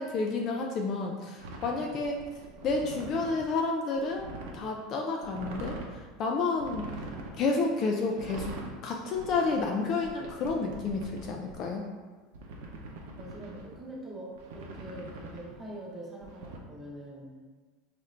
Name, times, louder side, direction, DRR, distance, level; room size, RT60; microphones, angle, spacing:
voice 1, 0.0-2.2 2.6-4.3 4.5-6.9 7.4-11.8, left 3 dB, 35° left, 1 dB, 0.3 m, -30 dB
sound 1, 1.4-3.5 3.9-4.6 5.2-6.0 6.6-7.4 8.1-8.7 9.1-11.6 12.3-13.7 14.3-15.6 16.2-16.6, right 2 dB, 75° right, 0.6 m, -43 dB
voice 2, 13.2-17.3, right 1 dB, 15° right, -5 dB, 0.9 m, -44 dB
4.3 x 2.5 x 3.2 m, 1.4 s
supercardioid pair, 160°, 0 cm